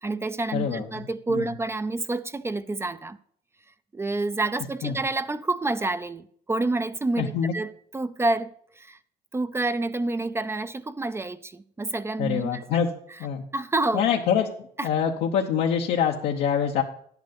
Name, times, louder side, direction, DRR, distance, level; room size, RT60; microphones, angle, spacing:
voice 1, 0.0-3.2 3.9-9.0 9.3-12.6 13.1-13.2 13.5-14.0 14.8-14.9, right 2 dB, 15° right, 0.4 m, -28 dB
voice 2, 0.5-0.8 1.3-1.4 4.8-4.9 7.2-7.5 12.2-12.9 13.2-13.4 13.9-14.5 14.8-16.8, left 8 dB, 80° left, 0.9 m, -24 dB
10.5 x 8.2 x 5.2 m
cardioid pair, 110°, 17 cm